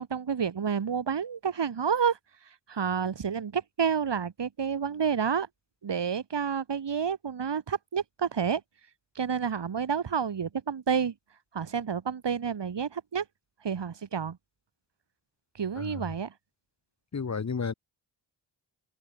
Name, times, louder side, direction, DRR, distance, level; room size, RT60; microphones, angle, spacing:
voice 1, 0.0-2.2 2.7-5.5 5.8-8.6 9.2-11.1 11.5-13.3 13.6-14.4 15.6-16.3, right 7 dB, 65° right, 6.9 m, -29 dB
voice 2, 17.1-17.7, left 5 dB, 35° left, 1.6 m, -32 dB
cardioid pair, 80°, 45 cm